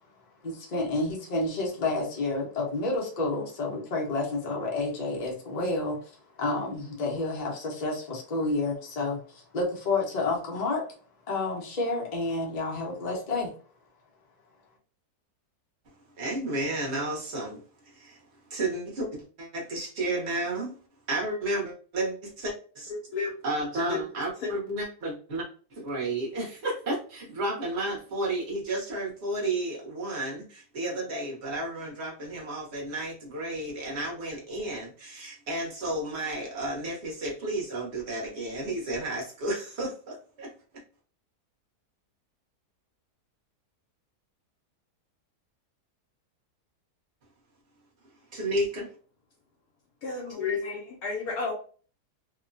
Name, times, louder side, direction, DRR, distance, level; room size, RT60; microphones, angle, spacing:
voice 1, 0.4-6.1 6.4-10.8 11.3-13.5, left 2 dB, 40° left, -1 dB, 0.6 m, -30 dB
voice 2, 15.8-18.2 18.5-20.7 21.1-22.9 23.4-25.4 25.7-40.5 48.3-48.9, right 2 dB, 45° right, -2 dB, 1.1 m, -32 dB
voice 3, 22.9-23.3 23.9-24.1 24.4-24.5 50.0-51.5, left 4 dB, 75° left, -2 dB, 1.1 m, -32 dB
2.9 x 2.1 x 2.5 m, 0.41 s
omnidirectional pair, 1.7 m